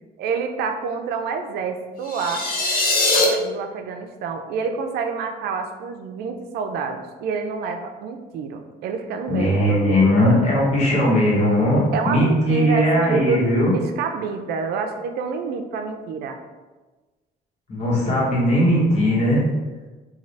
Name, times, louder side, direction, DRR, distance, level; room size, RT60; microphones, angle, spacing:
voice 1, 0.2-2.5 3.1-10.1 11.9-16.4, right 5 dB, 70° right, 6 dB, 0.4 m, -28 dB
sound 1, 2.0-3.2, left 3 dB, 60° left, 0.7 m, -21 dB
voice 2, 9.3-13.7 17.7-19.4, equal, 40° left, -5 dB, 1.1 m, -18 dB
2.6 x 2.3 x 3.2 m, 1.2 s
cardioid pair, 110°, 17 cm